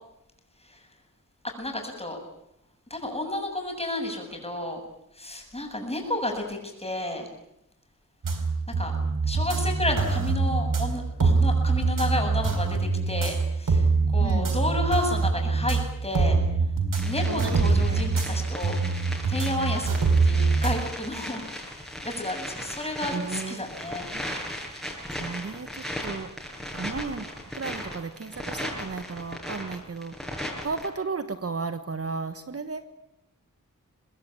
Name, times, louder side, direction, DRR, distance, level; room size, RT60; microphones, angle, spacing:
voice 1, 1.6-2.2 2.9-4.8 5.1-7.3 8.8-8.9 9.2-16.4 17.0-18.8 19.3-21.4 22.0-24.1, left 1 dB, 20° left, 2 dB, 7.7 m, -31 dB
sound 1, 8.2-20.8, right 4 dB, 75° right, 4.2 m, -24 dB
voice 2, 14.2-14.5 17.2-18.0 23.1-23.6 24.1-24.2 25.2-26.3 26.7-27.3 27.5-30.1 30.6-32.8, right 4 dB, 45° right, 10 dB, 1.4 m, -34 dB
sound 2, 16.9-30.9, equal, ahead, 7.6 m, -37 dB
25.0 x 20.0 x 8.8 m, 0.82 s
wide cardioid pair, 85°, 32 cm